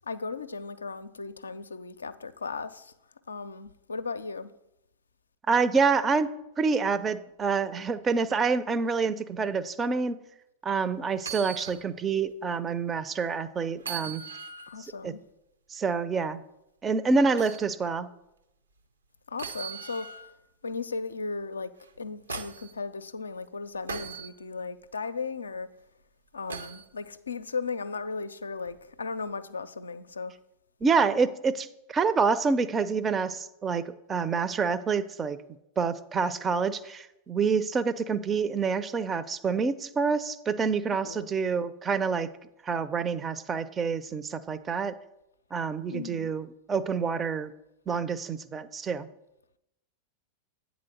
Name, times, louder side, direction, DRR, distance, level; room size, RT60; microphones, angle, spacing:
voice 1, 0.0-2.9 3.3-4.5 14.7-15.2 19.3-20.4 20.6-21.7 22.0-25.7 26.3-30.4 40.9-41.3 45.9-46.3, left 4 dB, 75° left, 0.4 m, -36 dB
voice 2, 5.5-6.3 6.6-10.2 10.6-14.2 15.0-15.1 15.7-16.4 16.8-18.1 30.8-35.4 35.8-42.3 42.6-44.9 45.5-47.5 47.9-49.1, right 5 dB, 20° right, 0.4 m, -27 dB
sound 1, 11.2-11.8 12.3-12.4 13.8-14.8 17.4-17.7 19.4-20.3 21.8-22.7 23.9-24.3 26.5-26.9 28.6-28.8, right 5 dB, 75° right, 0.6 m, -39 dB
8.6 x 4.0 x 6.4 m
figure-of-eight pair, 90°, 0 cm